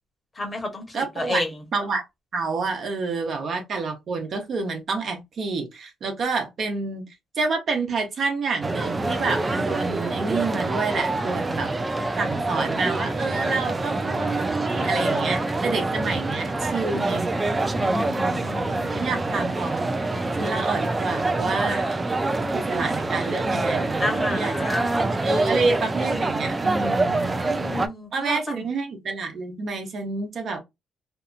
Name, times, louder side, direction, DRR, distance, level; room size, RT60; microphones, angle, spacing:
voice 1, 0.4-1.5 17.7-19.1 21.6-21.9 24.0-24.9 27.4-28.6, left 2 dB, 30° left, 1.0 m, -31 dB
voice 2, 0.9-1.4 1.7-2.0 2.3-7.1 7.3-11.7 12.2-17.3 17.9-18.4 18.9-19.9 20.4-21.8 22.4-24.5 25.2-27.4 28.1-30.6, right 4 dB, 55° right, 0.9 m, -28 dB
sound 1, 8.6-27.9, right 2 dB, 20° right, 0.4 m, -26 dB
2.7 x 2.5 x 2.4 m
cardioid pair, 90°, 0 cm